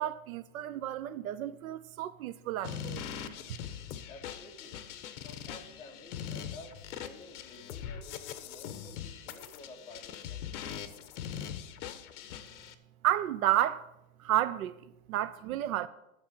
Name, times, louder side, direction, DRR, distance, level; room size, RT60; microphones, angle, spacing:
voice 1, 0.0-3.0 13.0-13.8 14.2-14.8 15.1-15.9, right 13 dB, 75° right, 0.8 m, -31 dB
sound 1, 2.6-12.7, left 9 dB, 60° left, 1.1 m, -42 dB
voice 2, 4.1-4.8 5.2-10.7, left 2 dB, 15° left, 2.0 m, -52 dB
12.5 x 7.3 x 5.7 m
supercardioid pair, 165°, 42 cm